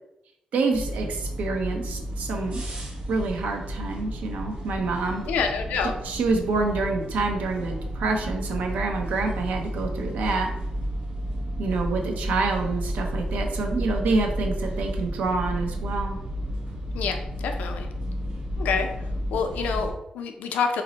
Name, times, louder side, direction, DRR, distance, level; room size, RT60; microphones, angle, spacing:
voice 1, 0.5-2.6 3.1-5.2 6.0-10.5 11.6-16.2, right 3 dB, 80° right, 3 dB, 0.5 m, -27 dB
sound 1, 0.7-19.9, equal, 55° right, 0.9 m, -32 dB
voice 2, 5.3-5.9 16.9-17.9 18.6-18.9 19.3-20.8, left 5 dB, 85° left, 5 dB, 0.4 m, -27 dB
2.6 x 2.1 x 3.9 m, 0.83 s
cardioid pair, 65°, 3 cm